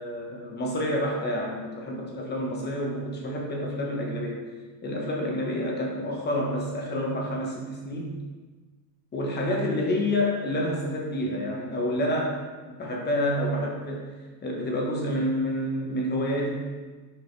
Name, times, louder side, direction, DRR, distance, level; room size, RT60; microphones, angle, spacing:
voice 1, 0.0-4.4 4.8-8.1 9.1-12.4 12.6-14.2 14.4-16.5, left 1 dB, 20° left, 0 dB, 1.2 m, -28 dB
6.8 x 5.2 x 3.4 m, 1.3 s
supercardioid pair, 140°, 48 cm